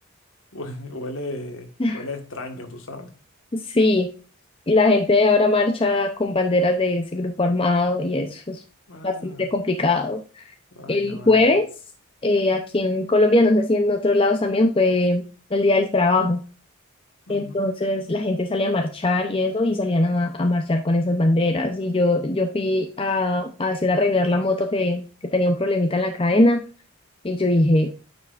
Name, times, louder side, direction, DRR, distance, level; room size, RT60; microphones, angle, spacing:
voice 1, 0.5-3.2 8.9-9.5 10.7-11.4 17.3-17.6, left 2 dB, 60° left, 5 dB, 1.5 m, -36 dB
voice 2, 3.5-4.1 4.7-8.6 9.0-10.4 10.9-11.7 12.2-15.2 15.5-16.4 17.3-25.0 25.3-26.6 27.2-27.9, left 2 dB, 25° left, 4 dB, 0.6 m, -21 dB
9.3 x 5.6 x 2.5 m, 0.37 s
head